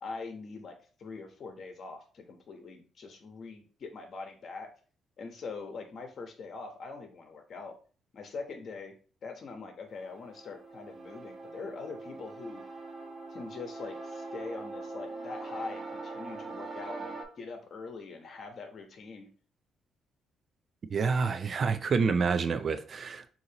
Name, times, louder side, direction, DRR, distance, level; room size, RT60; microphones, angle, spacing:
voice 1, 0.0-4.7 5.2-7.7 8.1-8.9 9.2-12.6 13.3-19.3, left 4 dB, 55° left, 1.2 m, -43 dB
sound 1, 9.9-17.2, right 3 dB, 30° right, 1.4 m, -42 dB
voice 2, 20.9-23.3, right 5 dB, 45° right, 0.4 m, -28 dB
6.4 x 2.9 x 2.9 m
cardioid pair, 90°, 0 cm